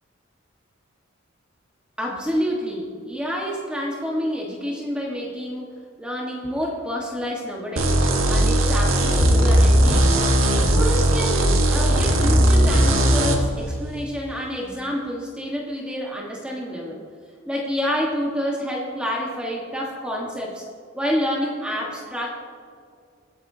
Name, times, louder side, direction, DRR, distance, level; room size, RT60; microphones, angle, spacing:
voice 1, 2.0-10.2 10.6-17.0 17.4-20.6 20.9-22.3, equal, 5° right, -3 dB, 1.4 m, -28 dB
sound 1, 7.8-13.4, right 1 dB, 85° right, 1.4 m, -18 dB
23.0 x 8.9 x 2.8 m, 2.2 s
head